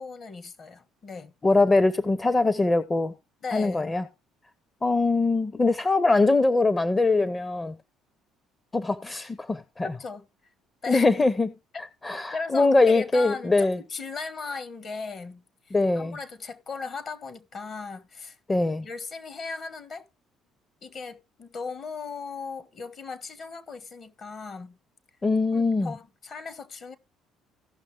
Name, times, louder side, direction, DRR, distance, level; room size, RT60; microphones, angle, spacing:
voice 1, 0.0-1.3 3.4-4.0 9.8-10.2 10.8-11.1 12.1-18.4 18.8-20.1 20.8-24.8 25.5-27.0, left 4 dB, 50° left, 1.3 m, -37 dB
voice 2, 1.4-3.1 3.5-4.1 4.8-7.8 8.7-9.9 10.9-11.5 12.0-13.8 15.7-16.2 18.5-18.9 25.2-25.9, left 3 dB, 20° left, 0.6 m, -22 dB
16.5 x 6.0 x 3.2 m
supercardioid pair, 85°, 0 cm